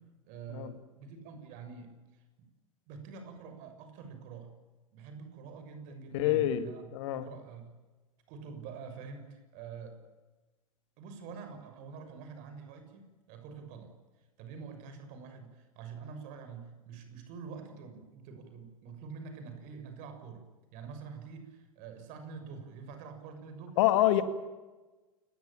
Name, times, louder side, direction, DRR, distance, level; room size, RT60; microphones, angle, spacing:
voice 1, 0.0-2.5 2.9-4.5 4.9-7.7 8.3-10.0 11.0-13.9 14.4-20.4 20.7-23.8, right 5 dB, 45° right, 8 dB, 6.7 m, -46 dB
voice 2, 6.1-6.7 6.9-7.2 23.8-24.2, left 13 dB, 55° left, 11 dB, 2.1 m, -26 dB
29.5 x 20.0 x 8.9 m, 1.2 s
figure-of-eight pair, 95°, 18 cm